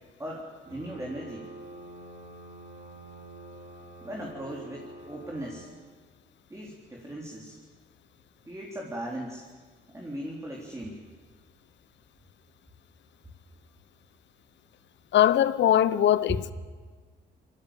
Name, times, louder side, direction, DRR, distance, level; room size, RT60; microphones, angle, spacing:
voice 1, 0.2-1.5 4.0-5.7 6.5-7.5 8.4-9.4 9.9-11.0 16.3-16.4, equal, 15° right, 4.0 m, -38 dB
sound 1, 0.7-5.6, right 2 dB, 65° right, 7.6 m, -46 dB
voice 2, 15.1-16.5, left 11 dB, 65° left, 0.9 m, -21 dB
23.0 x 15.5 x 9.1 m
cardioid pair, 90°, 20 cm